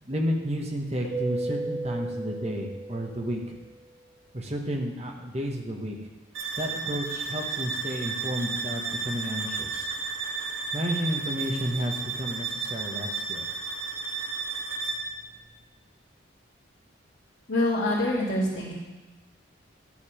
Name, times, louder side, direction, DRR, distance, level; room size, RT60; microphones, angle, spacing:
voice 1, 0.0-3.5 4.3-6.0 6.6-9.9 10.7-13.5, equal, 30° right, 1 dB, 1.3 m, -31 dB
Keyboard (musical), 1.0-3.6, right 2 dB, 85° left, 1.8 m, -34 dB
sound 1, 6.3-15.1, right 4 dB, 80° right, 1.6 m, -33 dB
voice 2, 17.5-18.7, left 1 dB, 55° left, -8 dB, 2.0 m, -25 dB
11.0 x 7.3 x 5.0 m, 1.1 s
head